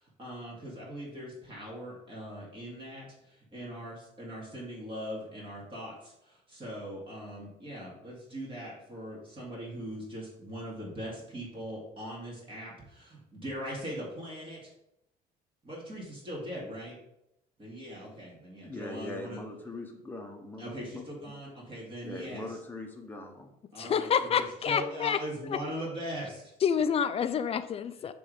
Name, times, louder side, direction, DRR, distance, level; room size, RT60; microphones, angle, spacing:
voice 1, 0.2-14.7 15.6-17.0 17.6-19.4 20.6-22.5 23.7-26.5, equal, 30° right, -5 dB, 2.5 m, -40 dB
voice 2, 18.6-21.3 22.0-23.5, left 2 dB, 10° left, 2 dB, 1.1 m, -41 dB
voice 3, 23.8-25.6 26.6-28.1, left 7 dB, 35° left, 12 dB, 0.5 m, -28 dB
6.9 x 3.4 x 5.1 m, 0.83 s
cardioid pair, 110°, 17 cm